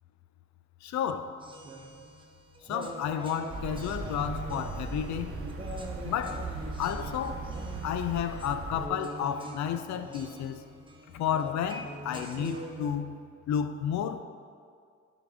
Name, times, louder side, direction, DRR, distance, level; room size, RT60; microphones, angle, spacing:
voice 1, 0.8-1.4 2.6-5.4 6.0-6.5 6.8-7.5 7.8-10.6 11.1-13.2 13.5-14.2, left 9 dB, 65° left, 0.5 m, -32 dB
sound 1, 1.4-12.9, right 2 dB, 15° right, 0.8 m, -43 dB
sound 2, 3.5-8.9, right 3 dB, 45° right, 0.9 m, -38 dB
10.0 x 3.9 x 3.5 m
cardioid pair, 90°, 30 cm